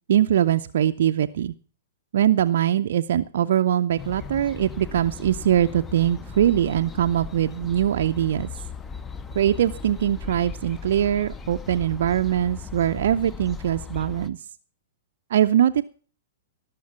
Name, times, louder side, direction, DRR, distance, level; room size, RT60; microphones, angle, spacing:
voice 1, 0.1-1.5 2.1-8.5 9.4-14.4 15.3-15.8, right 11 dB, 55° right, 7 dB, 0.5 m, -22 dB
sound 1, 4.0-14.3, left 5 dB, 15° left, 0.7 m, -37 dB
19.0 x 6.4 x 5.9 m, 0.41 s
figure-of-eight pair, 105°, 0 cm